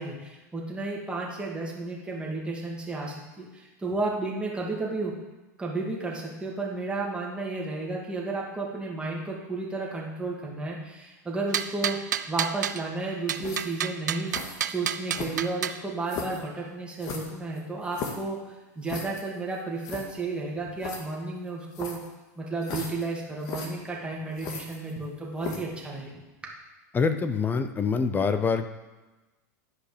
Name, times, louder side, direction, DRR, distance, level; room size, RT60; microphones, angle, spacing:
voice 1, 0.0-5.1 5.6-12.0 12.3-14.4 14.6-18.4 18.8-22.0 22.4-26.2, right 3 dB, 10° right, -3 dB, 2.4 m, -32 dB
sound 1, 11.5-12.8 13.3-15.8, right 9 dB, 90° right, 0.4 m, -30 dB
sound 2, 13.4-13.8 14.3-14.6 15.1-15.6 16.1-16.4 17.0-18.3 18.9-19.2 19.5-19.6 19.8-20.1 20.8-21.0 21.7-22.1 22.6-23.1 23.4-23.7 24.4-25.0 25.4-25.7, left 4 dB, 45° left, 1.8 m, -37 dB
voice 2, 26.9-28.7, left 5 dB, 20° left, 9 dB, 0.7 m, -25 dB
11.0 x 5.1 x 5.1 m, 1.1 s
hypercardioid pair, 110°, 9 cm